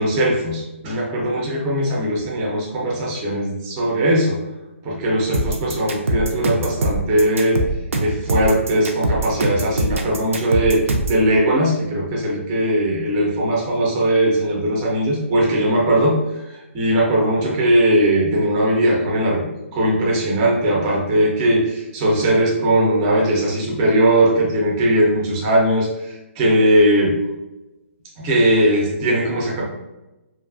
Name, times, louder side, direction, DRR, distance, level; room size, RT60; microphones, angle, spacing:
voice 1, 0.0-4.4 4.8-7.6 8.0-10.8 11.1-16.2 16.5-19.4 19.7-27.1 28.2-29.7, right 1 dB, 20° right, -3 dB, 0.5 m, -19 dB
sound 1, 5.3-11.2, right 1 dB, 75° right, 0.5 m, -22 dB
2.6 x 2.3 x 2.5 m, 1.0 s
hypercardioid pair, 165°, 7 cm